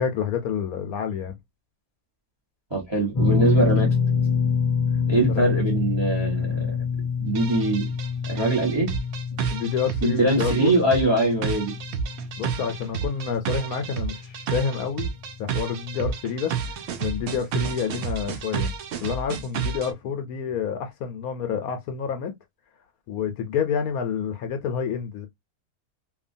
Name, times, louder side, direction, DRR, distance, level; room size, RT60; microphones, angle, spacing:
voice 1, 0.0-1.3 5.3-5.5 9.5-10.8 12.4-15.1 15.4-16.5 17.0-18.7 19.0-22.3 23.1-25.3, left 7 dB, 70° left, 1.1 m, -28 dB
voice 2, 2.7-3.9 5.1-6.8 7.2-7.9 8.3-9.0 10.0-11.8, right 2 dB, 20° right, 0.9 m, -22 dB
sound 1, 3.1-15.4 15.6-15.9 17.6-17.7, left 6 dB, 55° left, 0.4 m, -27 dB
sound 2, 7.4-19.9, right 7 dB, 75° right, 0.6 m, -31 dB
2.8 x 2.4 x 2.5 m
omnidirectional pair, 1.6 m